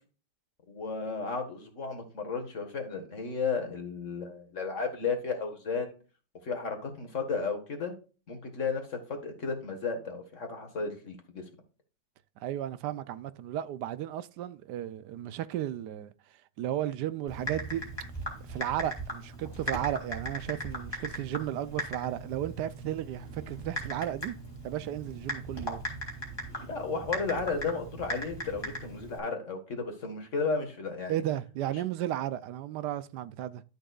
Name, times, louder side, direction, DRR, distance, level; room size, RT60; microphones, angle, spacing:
voice 1, 0.7-5.9 6.4-7.9 8.3-11.4 26.6-31.2, left 4 dB, 45° left, 1.9 m, -33 dB
voice 2, 12.4-16.1 16.6-17.8 18.4-24.4 24.6-25.8 31.1-33.6, right 12 dB, 75° right, 1.2 m, -34 dB
Typing, 17.3-29.2, equal, 15° left, 2.6 m, -38 dB
12.0 x 6.4 x 2.4 m
omnidirectional pair, 1.9 m